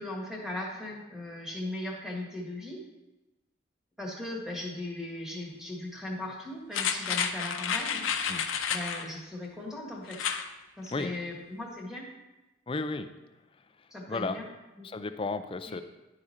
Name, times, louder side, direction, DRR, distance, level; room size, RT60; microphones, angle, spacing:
voice 1, 0.0-2.8 4.0-8.0 8.7-10.3 10.8-12.1 13.9-14.5 14.8-14.9 15.7-15.8, left 1 dB, 5° right, -2 dB, 1.5 m, -38 dB
sound 1, 6.7-9.1 10.1-10.5 10.9-11.0, left 7 dB, 85° left, 0.6 m, -30 dB
voice 2, 12.7-13.1 14.1-14.4 14.8-15.8, left 3 dB, 25° left, 9 dB, 0.4 m, -33 dB
11.0 x 4.9 x 4.2 m, 1.1 s
head